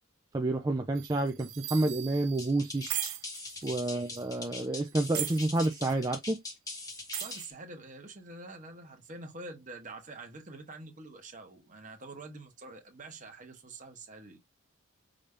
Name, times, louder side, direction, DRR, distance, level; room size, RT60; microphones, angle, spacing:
voice 1, 0.3-2.8 3.6-6.4, right 2 dB, 20° right, 0.4 m, -29 dB
sound 1, 1.0-4.3 4.9-6.0 6.9-7.5, right 14 dB, 80° right, 0.6 m, -39 dB
sound 2, 2.4-7.5, left 3 dB, 15° left, 1.0 m, -42 dB
voice 2, 7.1-14.4, right 2 dB, 35° right, 1.0 m, -46 dB
5.1 x 2.7 x 3.3 m
head